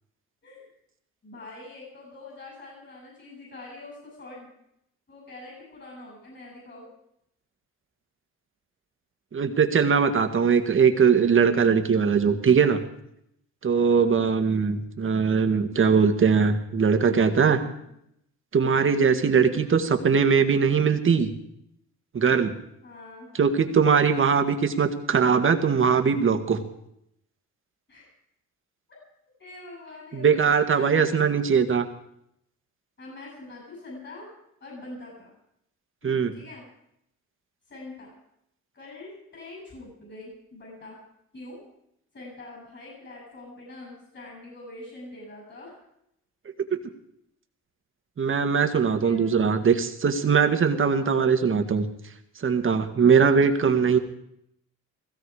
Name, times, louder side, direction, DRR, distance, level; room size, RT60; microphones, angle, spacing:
voice 1, 1.2-4.5 5.1-6.9 12.3-12.6 13.7-14.4 17.5-17.9 19.5-19.9 22.8-23.3 27.9-28.1 28.9-29.0 29.4-31.4 33.0-34.3 34.6-35.3 36.0-36.6 37.7-38.1 38.7-41.0 41.3-41.6 42.1-45.8 49.0-49.7 50.8-51.4 52.9-53.5, left 2 dB, 40° left, -3 dB, 7.9 m, -44 dB
voice 2, 9.3-12.8 13.6-17.6 18.5-21.3 22.1-22.5 23.4-26.6 30.1-31.9 36.0-36.3 48.2-51.9 52.4-54.0, right 6 dB, 45° right, 7 dB, 1.8 m, -21 dB
17.0 x 15.5 x 4.9 m, 0.77 s
cardioid pair, 90°, 30 cm